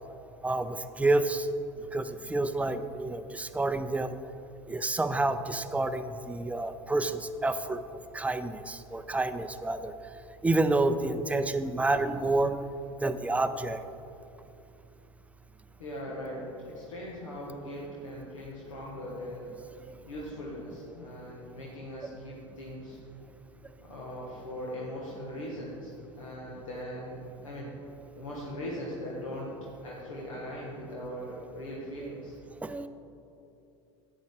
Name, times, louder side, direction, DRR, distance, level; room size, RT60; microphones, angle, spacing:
voice 1, 0.4-1.5 1.9-4.2 4.7-7.8 8.1-9.9 10.4-12.6 13.0-13.8 19.9-20.0 32.6-32.9, right 2 dB, 10° right, 11 dB, 0.4 m, -29 dB
voice 2, 15.8-19.5 20.1-23.0 23.8-27.7 28.1-29.5 29.8-32.4, equal, 80° left, -5 dB, 1.4 m, -40 dB
10.5 x 8.6 x 3.7 m, 2.8 s
hypercardioid pair, 80°, 16 cm